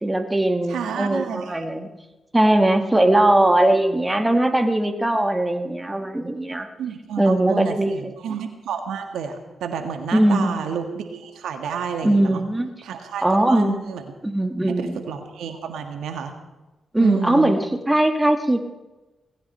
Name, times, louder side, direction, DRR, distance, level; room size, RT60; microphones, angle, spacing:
voice 1, 0.0-1.9 2.3-6.7 7.2-8.1 10.1-10.5 12.0-12.7 13.2-13.8 14.2-15.0 16.9-18.6, right 1 dB, 15° right, 6 dB, 2.0 m, -20 dB
voice 2, 0.7-1.6 6.8-12.4 12.8-14.1 14.7-16.3 17.0-17.5, right 7 dB, 85° right, 6 dB, 1.6 m, -30 dB
18.5 x 16.0 x 4.4 m, 1.1 s
supercardioid pair, 50°, 0 cm